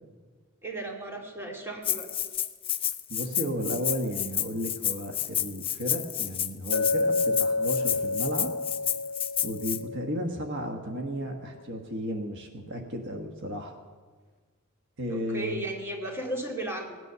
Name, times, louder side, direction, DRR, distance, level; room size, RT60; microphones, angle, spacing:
voice 1, 0.6-2.1 15.1-17.0, right 1 dB, 10° right, 0 dB, 2.3 m, -35 dB
Rattle (instrument), 1.8-9.8, left 11 dB, 25° left, 0.5 m, -30 dB
voice 2, 3.1-8.5 9.4-13.7 15.0-15.6, equal, 60° right, 4 dB, 1.3 m, -34 dB
Chink clink, 6.7-10.7, left 3 dB, 50° left, 0.9 m, -29 dB
17.5 x 9.4 x 6.8 m, 1.4 s
head